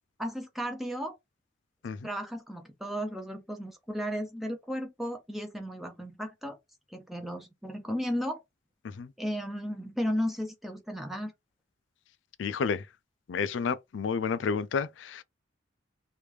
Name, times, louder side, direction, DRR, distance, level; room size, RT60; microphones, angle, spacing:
voice 1, 0.2-1.1 2.0-6.6 6.9-8.4 9.2-11.3, equal, ahead, 0.5 m, -34 dB
voice 2, 12.4-12.9 13.3-15.2, left 5 dB, 75° left, 0.4 m, -31 dB
3.2 x 2.6 x 3.2 m
head